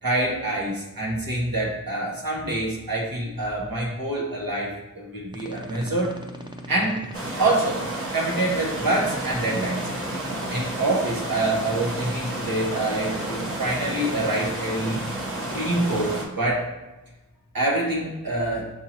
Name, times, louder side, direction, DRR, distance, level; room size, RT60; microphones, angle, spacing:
voice 1, 0.0-6.2 6.7-7.1 7.4-7.8 8.1-9.9 10.5-15.0 15.5-16.7 17.5-18.7, right 2 dB, 80° right, -5 dB, 1.3 m, -26 dB
sound 1, 5.3-7.1 9.0-10.8 12.7-14.5, right 1 dB, 15° right, 0.5 m, -39 dB
sound 2, 7.1-16.2, right 1 dB, 40° right, 1.0 m, -31 dB
6.6 x 2.7 x 2.9 m, 1.1 s
wide cardioid pair, 60°, 35 cm